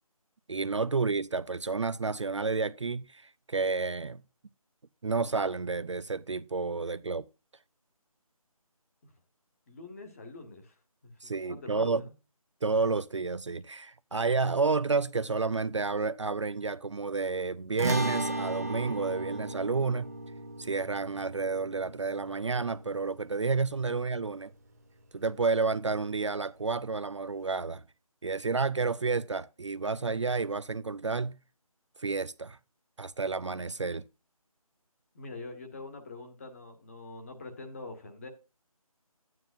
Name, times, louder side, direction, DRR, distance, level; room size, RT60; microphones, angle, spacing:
voice 1, 0.5-4.2 5.0-7.3 11.2-12.0 12.6-20.1 20.6-24.5 25.1-27.8 28.2-31.4 32.0-32.6 33.0-34.1, right 4 dB, 50° right, 0.5 m, -30 dB
voice 2, 9.7-10.7 11.0-12.1 35.1-38.3, left 3 dB, 25° left, 1.5 m, -44 dB
sound 1, 17.8-24.3, right 2 dB, 25° right, 0.9 m, -36 dB
11.0 x 9.3 x 2.5 m
figure-of-eight pair, 165°, 19 cm